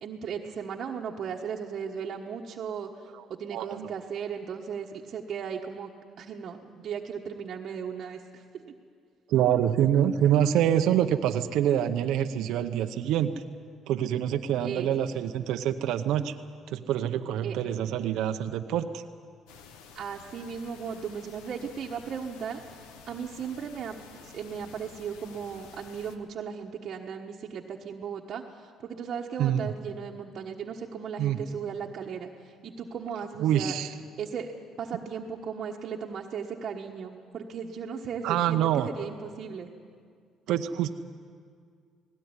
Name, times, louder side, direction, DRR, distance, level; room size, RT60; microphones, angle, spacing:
voice 1, 0.0-5.9 6.2-8.6 14.6-14.9 17.4-17.6 19.9-22.6 23.1-33.7 34.2-34.5 34.8-39.7, right 7 dB, 55° right, -1 dB, 1.3 m, -36 dB
voice 2, 3.5-3.9 9.3-13.3 13.9-16.3 16.7-19.0 29.4-29.7 31.2-31.4 33.4-33.9 38.2-38.9 40.5-40.9, right 10 dB, 75° right, 7 dB, 0.8 m, -26 dB
sound 1, 19.5-26.2, left 6 dB, 90° left, 1.4 m, -51 dB
18.5 x 17.5 x 9.7 m, 2.1 s
cardioid pair, 95°, 0 cm